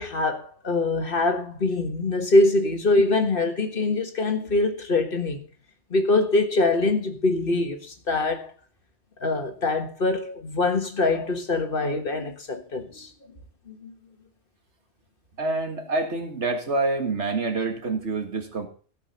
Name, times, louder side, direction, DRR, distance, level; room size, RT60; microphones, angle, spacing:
voice 1, 0.0-5.4 5.9-8.5 9.2-13.1 13.7-13.9, left 2 dB, 50° left, 1.7 m, -24 dB
voice 2, 15.4-18.7, right 3 dB, 75° right, 2.1 m, -27 dB
16.5 x 5.6 x 5.4 m
omnidirectional pair, 1.2 m